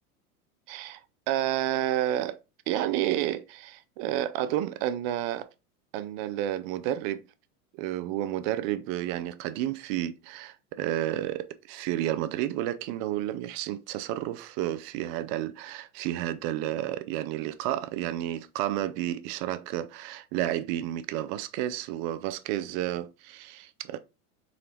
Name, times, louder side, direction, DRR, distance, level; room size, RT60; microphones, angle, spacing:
voice 1, 0.7-1.0 1.3-2.4 2.7-5.5 5.9-7.2 7.8-24.0, right 13 dB, 40° right, 0.4 m, -31 dB
3.8 x 3.8 x 3.3 m
hypercardioid pair, 100°, 45 cm